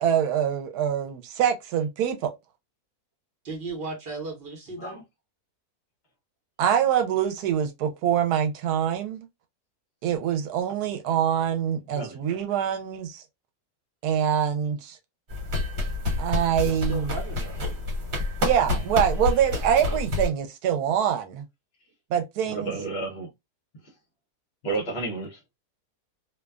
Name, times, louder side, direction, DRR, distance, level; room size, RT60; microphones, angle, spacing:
voice 1, 0.0-2.3 6.6-9.3 10.0-13.2 14.0-15.0 16.2-17.1 18.4-21.4 22.1-22.8, right 9 dB, 85° right, 1.1 m, -25 dB
voice 2, 3.4-5.0 16.6-17.5, right 3 dB, 45° right, 1.0 m, -36 dB
sound 1, 15.3-20.3, left 2 dB, 60° right, 1.3 m, -28 dB
voice 3, 22.4-23.3 24.6-25.5, right 3 dB, 50° left, 0.9 m, -32 dB
2.6 x 2.2 x 2.2 m
omnidirectional pair, 1.6 m